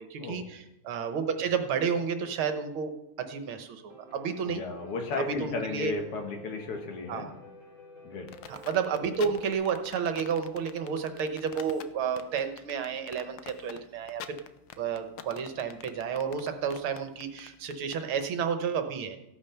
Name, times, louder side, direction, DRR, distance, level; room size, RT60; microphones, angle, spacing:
voice 1, 0.0-2.9 3.2-4.6 5.4-6.0 7.1-7.3 8.5-14.4 14.8-19.2, right 6 dB, 70° right, 7 dB, 2.0 m, -31 dB
Piano, 3.9-9.5, equal, 25° right, 5.1 m, -50 dB
voice 2, 4.5-7.3 8.0-8.3, left 4 dB, 90° left, 4 dB, 2.6 m, -34 dB
sound 1, 8.3-18.3, left 10 dB, 70° left, 1.3 m, -45 dB
15.0 x 8.6 x 5.8 m, 0.87 s
omnidirectional pair, 2.4 m